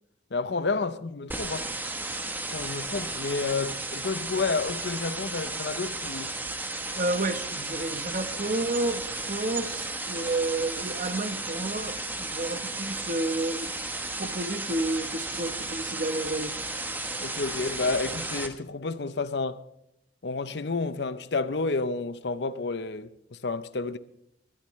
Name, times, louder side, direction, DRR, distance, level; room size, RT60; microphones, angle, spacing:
voice 1, 0.3-1.7 2.5-6.4 17.2-19.6 20.2-24.0, left 3 dB, 70° left, 0.7 m, -30 dB
sound 1, 1.3-18.5, right 2 dB, 10° right, 1.0 m, -34 dB
voice 2, 6.9-13.7 14.2-16.6, right 2 dB, 45° right, 1.0 m, -31 dB
22.0 x 12.0 x 3.2 m
head